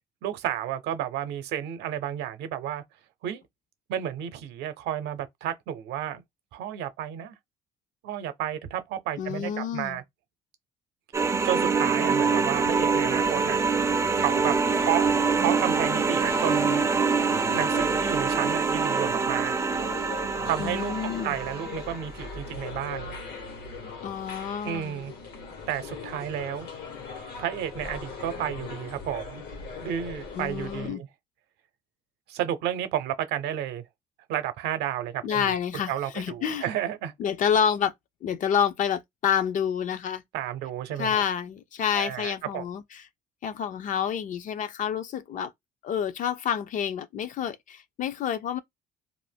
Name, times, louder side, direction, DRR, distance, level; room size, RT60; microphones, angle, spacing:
voice 1, 0.2-2.8 3.2-3.4 3.9-6.2 6.5-7.4 8.0-10.0 11.4-13.6 14.1-15.1 15.4-16.8 17.5-19.6 20.4-20.9 21.2-23.1 24.6-25.1 25.7-26.7 27.4-29.4 29.8-31.1 32.3-33.8 34.3-35.6 35.9-37.1 40.3-41.2 41.9-42.6, right 11 dB, 85° right, 0.6 m, -31 dB
voice 2, 9.2-10.0 20.6-21.4 24.0-25.0 30.4-31.0 35.2-36.7 37.2-37.9 38.2-40.2 41.0-43.0 43.4-45.5 45.8-48.6, left 8 dB, 50° left, 0.4 m, -28 dB
sound 1, 11.1-21.9, right 4 dB, 15° right, 0.3 m, -25 dB
sound 2, 12.6-30.9, left 4 dB, 75° left, 1.2 m, -40 dB
2.5 x 2.1 x 3.3 m
cardioid pair, 110°, 17 cm